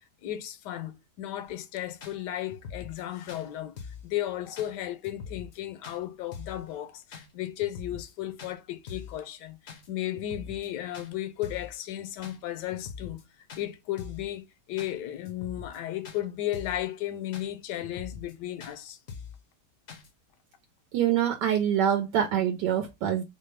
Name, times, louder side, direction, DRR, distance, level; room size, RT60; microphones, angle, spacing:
voice 1, 0.2-3.8 4.0-9.6 9.9-13.2 13.6-19.0, left 13 dB, 80° left, 1.2 m, -34 dB
sound 1, 1.5-1.6 2.0-2.2 2.5-3.0 3.3-3.4 3.8-4.1 4.6-4.7 5.0-5.6 5.8-6.0 6.3-6.6 7.1-7.3 7.6-8.1 8.4-8.5 8.9-9.2 9.7-9.9 10.1-10.7 10.9-11.1 11.4-11.7 12.2-12.4 12.7-13.2 13.5-13.6 14.0-14.3 14.8-14.9 15.3-15.8 16.1-16.2 16.5-16.8 17.3-17.5 17.8-18.3 18.6-18.8 19.1-19.4 19.9-20.1, left 6 dB, 60° left, 0.7 m, -43 dB
voice 2, 20.9-23.2, right 9 dB, 80° right, 1.2 m, -25 dB
4.1 x 2.0 x 3.1 m
omnidirectional pair, 1.9 m